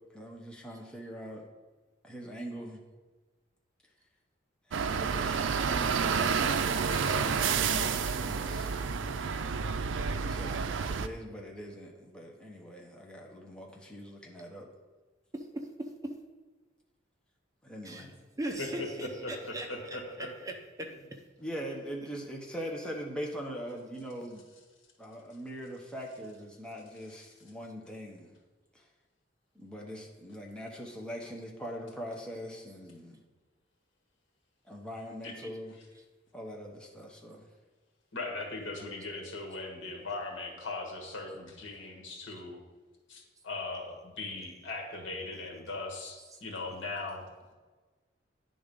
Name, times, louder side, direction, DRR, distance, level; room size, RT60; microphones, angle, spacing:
voice 1, 0.1-1.4 2.0-2.8 4.7-8.9 10.2-14.7 17.6-18.1 21.4-24.5 25.0-28.3 28.7-28.9 29.5-33.2 34.6-35.8 36.3-37.5, equal, 5° left, -1 dB, 0.9 m, -42 dB
voice 2, 2.3-2.6 15.3-16.1 17.8-18.1 18.4-21.2 21.6-21.7 22.0-22.1 31.3-31.4 31.8-31.9 32.4-32.5 35.0-35.1 35.4-35.5 35.9-36.0 42.3-42.4 46.2-46.4, right 1 dB, 20° right, 3 dB, 0.6 m, -41 dB
sound 1, 4.7-11.1, right 6 dB, 75° right, 0.4 m, -30 dB
voice 3, 18.6-20.3 35.2-35.4 38.1-42.6 43.1-47.5, left 2 dB, 80° left, 1 dB, 1.6 m, -39 dB
9.8 x 3.9 x 5.2 m, 1.3 s
head